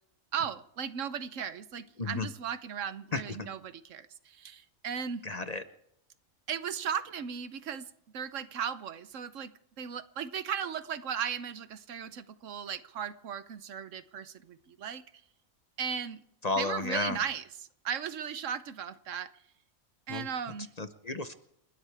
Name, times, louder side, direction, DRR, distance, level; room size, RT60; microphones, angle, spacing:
voice 1, 0.3-5.2 6.5-9.5 9.8-15.0 15.8-16.2 16.6-19.3 20.1-20.7, right 7 dB, 70° right, 13 dB, 1.2 m, -36 dB
voice 2, 5.3-5.6 16.4-17.2 20.1-20.3 20.8-21.3, left 3 dB, 35° left, 10 dB, 0.8 m, -32 dB
30.0 x 13.0 x 3.4 m, 0.75 s
omnidirectional pair, 1.4 m